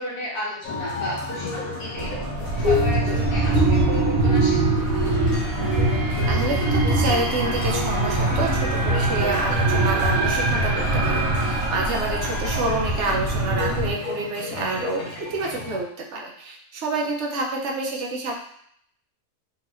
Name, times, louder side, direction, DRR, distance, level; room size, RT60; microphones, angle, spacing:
voice 1, 0.0-2.1 2.6-4.6, left 1 dB, 45° left, -6 dB, 1.1 m, -33 dB
sound 1, 0.6-15.8, left 3 dB, 80° left, 1.3 m, -32 dB
sound 2, 1.9-13.9, right 2 dB, 80° right, 1.2 m, -23 dB
voice 2, 6.3-18.3, right 2 dB, 60° right, -1 dB, 0.9 m, -28 dB
3.5 x 2.9 x 3.0 m, 0.67 s
omnidirectional pair, 1.5 m